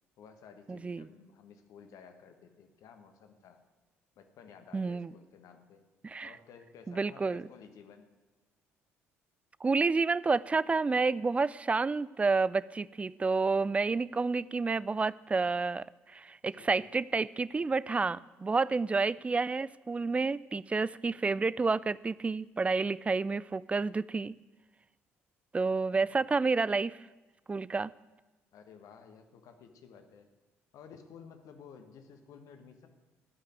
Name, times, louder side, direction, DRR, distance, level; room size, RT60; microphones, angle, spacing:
voice 1, 0.2-3.6 4.2-5.8 6.2-8.1 16.5-16.9 25.9-26.3 28.5-30.3 30.7-32.9, left 6 dB, 55° left, 7 dB, 1.3 m, -54 dB
voice 2, 0.7-1.1 4.7-5.1 6.0-6.3 6.9-7.4 9.6-24.3 25.5-27.0 27.5-27.9, right 4 dB, 20° right, 20 dB, 0.3 m, -29 dB
12.5 x 5.7 x 9.2 m, 1.1 s
figure-of-eight pair, 50°, 7 cm